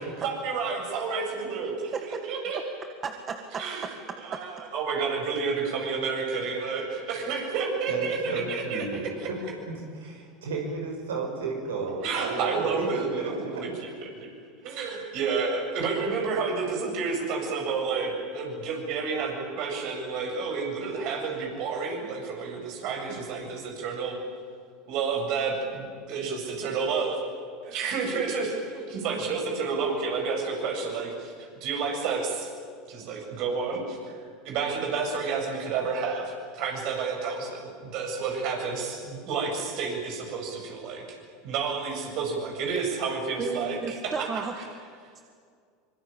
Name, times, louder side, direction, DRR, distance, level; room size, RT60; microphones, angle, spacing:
voice 1, 0.2-2.6 3.6-3.9 4.2-8.8 9.2-9.3 12.0-14.3 14.6-24.2 24.9-27.2 27.6-31.3 31.6-32.5 32.9-34.2 34.4-41.2 41.4-44.3, right 5 dB, 55° right, 2 dB, 7.8 m, -30 dB
voice 2, 3.0-3.6 4.3-4.4 43.4-44.6 45.2-45.3, right 5 dB, 30° right, 6 dB, 2.0 m, -33 dB
voice 3, 7.9-9.4 9.7-13.6, right 3 dB, 75° right, 1 dB, 5.9 m, -33 dB
25.0 x 24.0 x 8.9 m, 2.1 s
hypercardioid pair, 75°, 0 cm